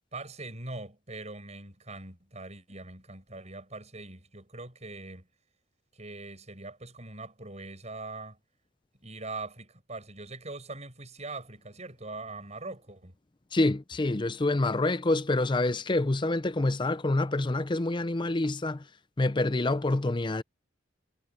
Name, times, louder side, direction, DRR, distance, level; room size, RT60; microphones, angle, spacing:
voice 1, 0.1-5.3 5.9-8.4 9.0-13.2, right 3 dB, 35° right, 7.6 m, -42 dB
voice 2, 13.5-18.8 19.2-20.4, left 2 dB, 25° left, 0.5 m, -27 dB
head